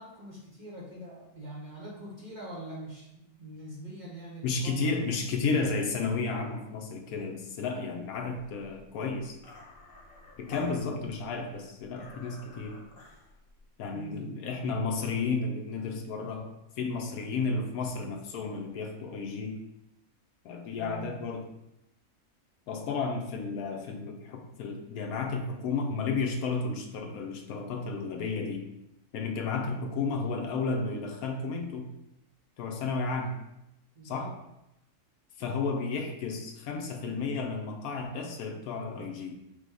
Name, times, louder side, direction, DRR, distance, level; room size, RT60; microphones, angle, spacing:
voice 1, 0.0-5.3 13.9-14.4 20.8-21.1 33.9-34.3, right 2 dB, 40° right, -4 dB, 0.8 m, -44 dB
voice 2, 4.4-9.4 10.4-12.8 13.8-19.6 20.4-21.4 22.7-28.7 29.1-31.9 32.6-33.4 34.0-34.3 35.4-39.3, left 4 dB, 80° left, 2 dB, 1.2 m, -32 dB
sound 1, 8.1-13.8, left 2 dB, 45° left, 0.8 m, -52 dB
5.1 x 2.2 x 4.7 m, 0.87 s
omnidirectional pair, 1.6 m